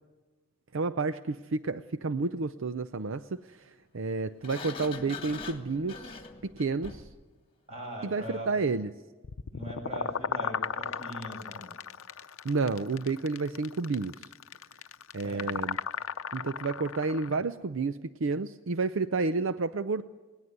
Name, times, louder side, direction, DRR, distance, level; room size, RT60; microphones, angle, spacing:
voice 1, 0.7-7.1 8.0-8.9 12.4-14.1 15.1-15.8 16.3-20.0, right 4 dB, 70° right, 12 dB, 0.6 m, -30 dB
Sliding door, 4.4-7.2, left 4 dB, 25° left, 1.6 m, -42 dB
voice 2, 7.7-8.5 9.5-11.7 15.2-15.7, equal, 30° right, 1 dB, 7.2 m, -41 dB
sound 1, 9.2-17.4, left 6 dB, 75° left, 0.7 m, -36 dB
20.5 x 18.5 x 8.0 m, 1.3 s
head